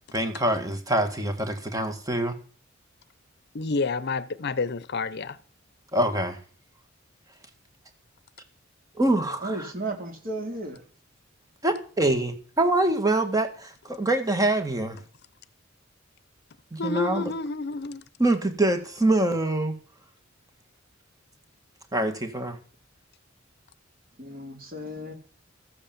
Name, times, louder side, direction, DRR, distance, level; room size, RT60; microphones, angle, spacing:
voice 1, 0.1-2.4 5.9-6.4 9.0-9.5 11.6-15.0 16.7-17.3 18.2-19.8 21.9-22.6, right 1 dB, 20° right, 1.9 m, -25 dB
voice 2, 3.5-5.4 16.8-18.0, left 3 dB, 55° left, 0.7 m, -29 dB
voice 3, 9.4-10.8 24.2-25.1, right 2 dB, 45° right, 3.0 m, -34 dB
14.5 x 8.5 x 7.2 m
head